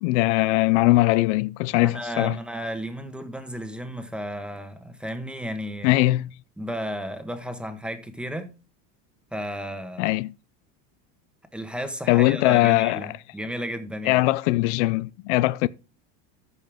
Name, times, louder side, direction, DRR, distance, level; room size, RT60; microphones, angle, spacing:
voice 1, 0.0-2.4 5.8-6.3 10.0-10.3 12.1-13.1 14.0-15.7, left 19 dB, 70° left, 0.5 m, -21 dB
voice 2, 1.8-5.9 6.6-8.5 9.3-10.1 11.5-14.2, equal, 5° right, 1.3 m, -33 dB
14.0 x 5.5 x 3.5 m
supercardioid pair, 125°, 37 cm